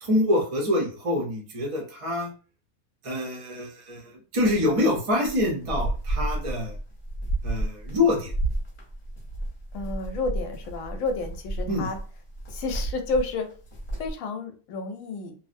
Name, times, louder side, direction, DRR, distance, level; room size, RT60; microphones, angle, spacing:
voice 1, 0.0-2.3 3.0-6.8 7.4-8.3 11.7-11.9, left 2 dB, 40° right, -1 dB, 0.5 m, -25 dB
sound 1, 5.2-14.1, right 2 dB, 35° left, 0.8 m, -31 dB
voice 2, 9.7-12.0 12.5-13.5 14.0-15.3, left 3 dB, 70° left, 5 dB, 0.9 m, -30 dB
2.7 x 2.0 x 2.5 m, 0.37 s
omnidirectional pair, 1.5 m